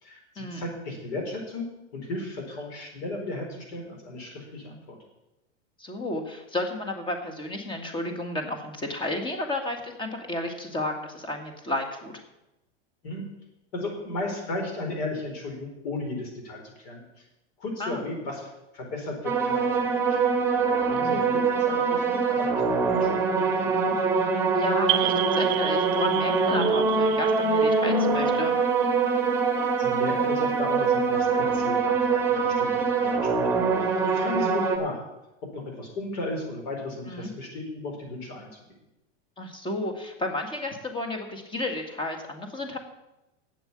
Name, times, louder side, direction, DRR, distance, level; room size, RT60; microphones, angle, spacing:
voice 1, 0.0-4.9 13.0-13.2 13.7-17.0 17.6-20.1 20.9-23.9 29.8-35.0 35.5-38.6, left 2 dB, 60° left, 1 dB, 4.6 m, -35 dB
voice 2, 5.8-12.2 17.8-18.0 20.9-21.2 24.5-28.6 37.1-37.3 39.4-42.8, left 1 dB, 15° left, 5 dB, 1.7 m, -32 dB
sound 1, 19.2-34.8, right 4 dB, 5° right, 2.0 m, -24 dB
sound 2, 24.9-29.3, right 16 dB, 40° right, 0.5 m, -32 dB
8.3 x 7.7 x 8.7 m, 0.94 s
supercardioid pair, 130°, 35 cm